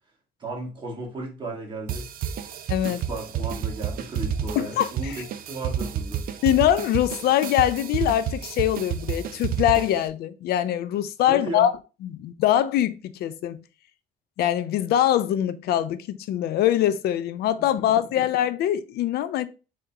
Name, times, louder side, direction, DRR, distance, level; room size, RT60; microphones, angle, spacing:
voice 1, 0.4-2.1 2.8-6.2 11.3-11.7, right 2 dB, 30° right, 1.8 m, -34 dB
sound 1, 1.9-10.1, right 8 dB, 60° right, 0.5 m, -30 dB
voice 2, 2.7-3.0 4.6-5.2 6.4-11.7 12.0-13.6 14.4-19.5, left 11 dB, 70° left, 0.5 m, -23 dB
3.7 x 3.5 x 2.8 m
cardioid pair, 110°, 17 cm